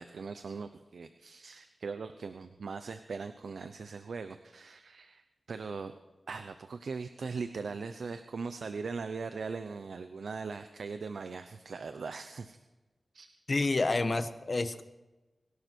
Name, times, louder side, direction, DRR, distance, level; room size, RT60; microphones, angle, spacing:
voice 1, 0.0-5.2 5.5-5.9 6.3-12.6 13.1-13.3, right 4 dB, 85° right, 9 dB, 0.8 m, -40 dB
voice 2, 13.5-14.8, left 3 dB, 45° left, 10 dB, 1.2 m, -29 dB
24.0 x 12.0 x 4.6 m, 1.1 s
wide cardioid pair, 80°, 0 cm